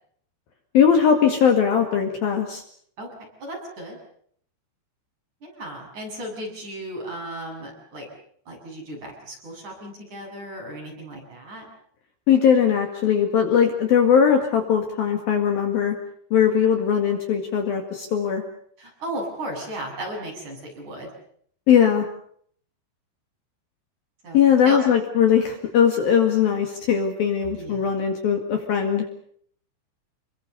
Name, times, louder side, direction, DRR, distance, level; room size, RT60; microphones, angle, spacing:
voice 1, 0.7-2.6 12.3-15.9 16.3-18.4 21.7-22.1 24.3-29.0, left 8 dB, 55° left, 4 dB, 3.4 m, -20 dB
voice 2, 3.0-4.0 5.4-8.1 8.5-11.7 18.8-21.1 24.2-24.4 24.6-24.8 27.6-27.9, right 1 dB, 40° right, 0 dB, 8.7 m, -35 dB
27.5 x 23.0 x 6.9 m, 0.63 s
omnidirectional pair, 5.7 m